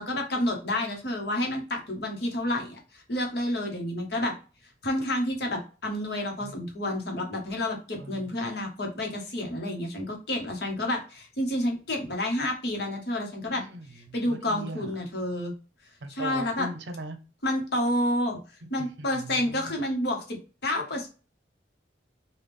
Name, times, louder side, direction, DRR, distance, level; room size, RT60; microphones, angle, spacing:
voice 1, 0.0-4.3 4.8-13.6 13.9-15.5 16.1-16.7 17.4-20.4 20.6-21.1, left 1 dB, 60° left, 2 dB, 1.0 m, -29 dB
voice 2, 8.0-8.3 13.6-14.9 16.0-17.2 18.6-19.7, right 1 dB, 70° right, 8 dB, 0.6 m, -40 dB
3.4 x 2.3 x 3.2 m, 0.34 s
head